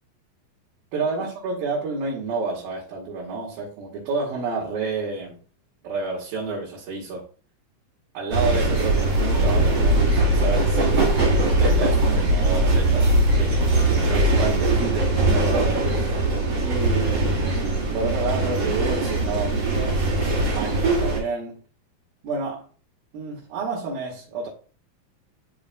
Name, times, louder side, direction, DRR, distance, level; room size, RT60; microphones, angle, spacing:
voice 1, 0.9-5.4 5.8-7.2 8.1-13.1 13.4-13.6 14.1-16.2 16.6-17.6 17.9-20.0 20.5-21.6 22.2-22.7 23.1-24.5, right 3 dB, 85° right, 3.6 m, -30 dB
sound 1, 8.3-21.2, right 2 dB, 40° right, 1.9 m, -21 dB
11.0 x 4.8 x 2.3 m
omnidirectional pair, 4.0 m